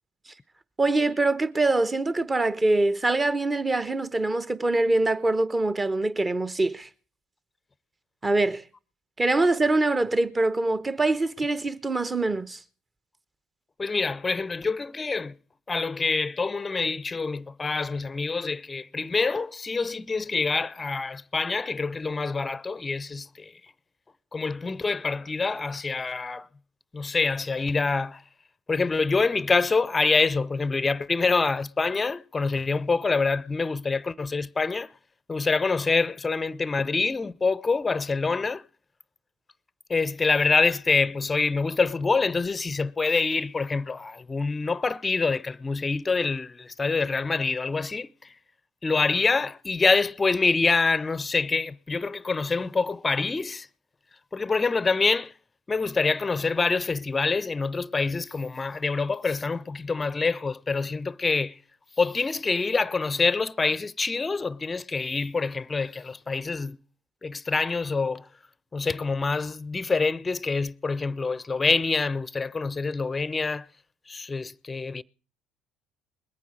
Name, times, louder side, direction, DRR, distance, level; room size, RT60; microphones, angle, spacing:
voice 1, 0.8-6.9 8.2-8.6 9.2-12.6, right 2 dB, 25° right, 1.1 m, -24 dB
voice 2, 13.8-15.4 15.7-23.5 24.3-26.5 26.9-28.2 28.7-34.9 35.3-38.6 39.9-48.1 48.8-53.7 54.3-55.3 55.7-61.6 62.0-66.8 67.2-68.3 68.7-73.7 74.1-75.0, left 4 dB, 25° left, 0.6 m, -26 dB
21.0 x 9.3 x 4.7 m
hypercardioid pair, 60°, 0 cm